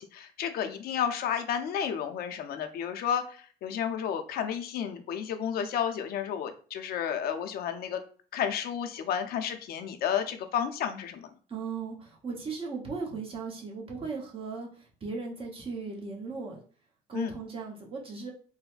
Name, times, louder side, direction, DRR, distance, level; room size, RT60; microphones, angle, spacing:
voice 1, 0.0-8.0 8.3-11.3 17.1-17.3, left 8 dB, 65° left, 7 dB, 0.5 m, -32 dB
voice 2, 11.5-16.6 17.1-18.3, right 4 dB, 35° right, -1 dB, 0.9 m, -37 dB
3.9 x 2.1 x 2.5 m, 0.41 s
cardioid pair, 110°, 17 cm